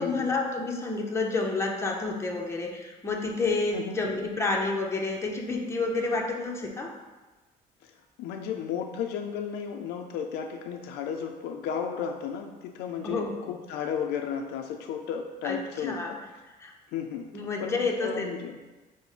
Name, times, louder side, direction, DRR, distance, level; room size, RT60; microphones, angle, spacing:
voice 1, 0.0-6.9 13.0-13.5 15.4-16.1 16.6-16.7 17.3-18.3, left 3 dB, 15° left, 0 dB, 0.6 m, -29 dB
voice 2, 8.2-16.2 16.9-17.3 17.6-18.6, left 7 dB, 80° left, 4 dB, 0.4 m, -34 dB
5.1 x 2.1 x 4.8 m, 1.2 s
cardioid pair, 110°, 17 cm